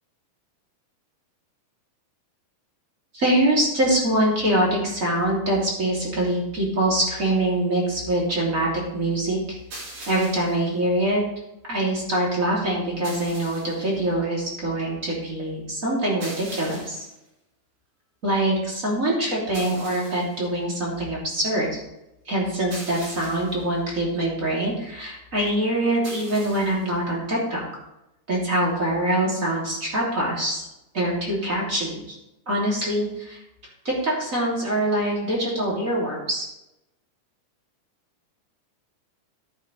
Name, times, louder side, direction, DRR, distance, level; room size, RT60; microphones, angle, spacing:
voice 1, 3.1-9.4 10.1-11.2 11.7-17.0 18.2-21.8 22.2-27.6 28.3-30.7 30.9-32.2 32.5-33.4 33.8-36.5, right 1 dB, 25° right, -5 dB, 3.3 m, -24 dB
sound 1, 9.7-10.6 13.0-13.9 16.2-17.1 19.5-20.4 22.7-23.6 26.0-26.9, right 2 dB, 65° right, 4.9 m, -40 dB
14.5 x 8.6 x 3.4 m, 0.89 s
omnidirectional pair, 3.8 m